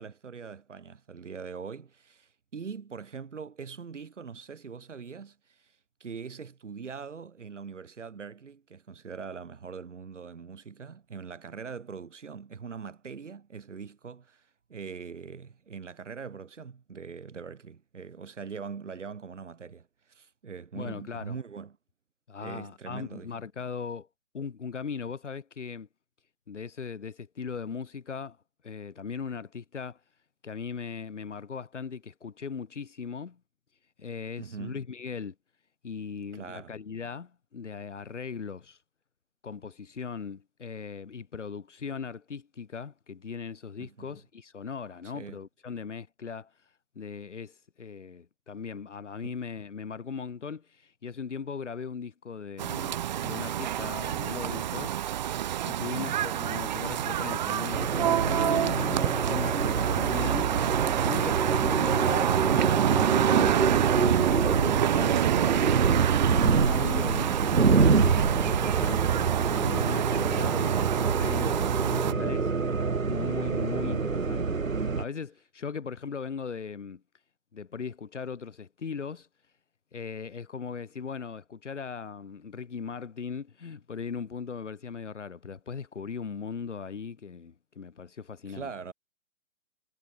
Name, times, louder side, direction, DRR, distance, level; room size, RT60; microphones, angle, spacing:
voice 1, 0.0-5.7 6.0-21.8 22.4-23.3 34.4-34.8 36.3-36.8 43.8-44.2 45.1-45.4 49.2-49.3 55.8-56.2 60.6-61.0 66.8-67.2 88.5-88.9, right 6 dB, 60° right, 3.0 m, -42 dB
voice 2, 20.7-21.4 22.3-24.1 24.3-25.9 26.5-28.4 28.6-30.0 30.4-33.4 34.0-35.3 35.8-38.8 39.4-46.5 46.9-55.0 55.6-60.5 61.0-65.9 66.4-67.3 67.7-69.0 69.5-72.5 73.1-77.0 77.5-79.3 79.9-88.7, left 6 dB, 60° left, 5.0 m, -38 dB
sound 1, 52.6-72.1, right 11 dB, 35° right, 1.0 m, -27 dB
sound 2, 57.7-75.0, right 4 dB, 75° right, 1.6 m, -27 dB
figure-of-eight pair, 130°, 40 cm